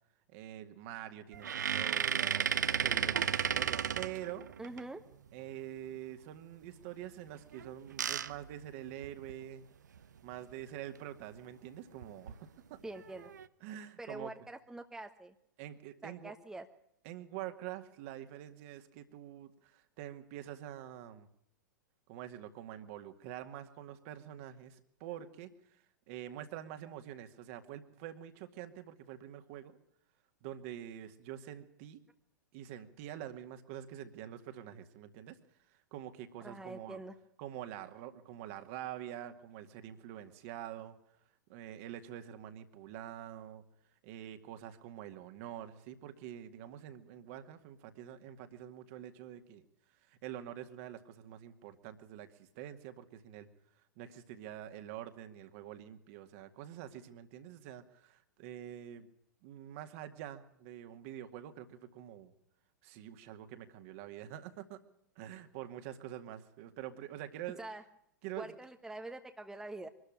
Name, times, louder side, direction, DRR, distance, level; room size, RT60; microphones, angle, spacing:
voice 1, 0.3-4.5 5.3-9.6 10.2-12.8 13.6-14.3 15.6-16.3 17.0-21.3 22.1-29.8 30.4-32.0 32.5-35.4 35.7-37.0 37.4-41.0 41.5-43.6 44.0-49.6 50.1-53.5 54.0-59.1 59.4-62.3 62.8-64.8 65.2-67.6 68.2-68.5, right 11 dB, 45° right, 8 dB, 2.1 m, -46 dB
sound 1, 1.3-4.8 7.5-9.4 10.0-10.1 10.3-10.5 12.0-12.3 12.9-13.5, right 8 dB, 65° right, 0.9 m, -33 dB
voice 2, 4.6-5.0 12.8-13.3 14.0-15.3 16.0-16.6 36.4-37.1 67.6-67.8 68.4-69.9, right 2 dB, 5° right, 5 dB, 1.2 m, -45 dB
24.0 x 13.0 x 8.9 m, 0.72 s
figure-of-eight pair, 100°, 10 cm